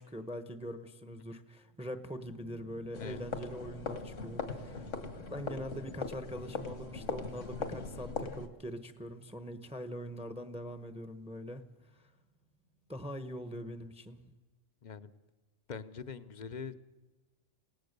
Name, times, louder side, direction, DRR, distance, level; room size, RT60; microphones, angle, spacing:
voice 1, 0.0-4.9 5.3-12.0 12.9-14.2, equal, 5° right, 9 dB, 0.9 m, -43 dB
sound 1, 1.6-13.0, right 4 dB, 85° right, 2.7 m, -58 dB
sound 2, 2.9-8.5, left 4 dB, 70° left, 2.0 m, -40 dB
voice 2, 15.7-16.7, left 6 dB, 40° left, 12 dB, 0.9 m, -43 dB
28.0 x 18.0 x 6.7 m, 1.2 s
omnidirectional pair, 1.3 m